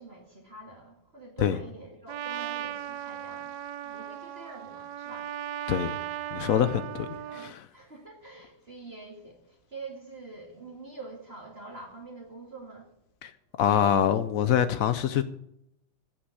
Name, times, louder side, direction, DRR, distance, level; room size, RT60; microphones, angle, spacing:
voice 1, 0.0-5.4 7.2-12.9, right 3 dB, 30° right, 2.1 m, -46 dB
Trumpet, 2.1-7.5, right 11 dB, 65° right, 1.0 m, -37 dB
voice 2, 6.3-7.7 13.2-13.3 13.6-15.2, left 9 dB, 80° left, 0.7 m, -25 dB
16.5 x 5.9 x 8.3 m
omnidirectional pair, 2.2 m